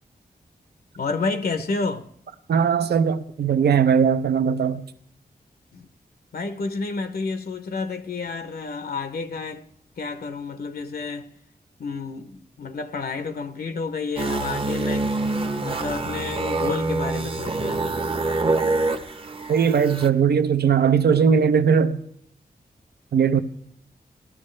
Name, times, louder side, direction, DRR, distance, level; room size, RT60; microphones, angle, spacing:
voice 1, 1.0-2.1 5.7-5.9 6.3-9.6 10.0-11.3 11.8-15.1 15.4-18.0, left 4 dB, 70° left, 0.7 m, -30 dB
voice 2, 2.5-4.9 19.5-22.0 23.1-23.4, right 7 dB, 85° right, 0.6 m, -19 dB
sound 1, 14.2-20.1, right 3 dB, 35° right, 0.7 m, -26 dB
17.0 x 12.0 x 3.2 m
wide cardioid pair, 115°, 16 cm